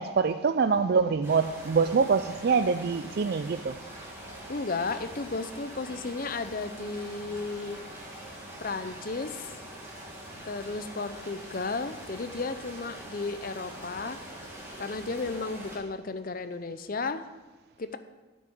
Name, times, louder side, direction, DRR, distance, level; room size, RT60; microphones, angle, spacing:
voice 1, 0.0-3.8, right 5 dB, 50° right, 10 dB, 0.3 m, -25 dB
sound 1, 1.2-15.8, right 1 dB, 15° right, 2.1 m, -44 dB
voice 2, 4.5-7.8 8.6-9.5 10.4-14.2 14.8-17.3 17.8-18.0, left 3 dB, 45° left, 11 dB, 0.6 m, -34 dB
9.3 x 6.2 x 8.5 m, 1.2 s
head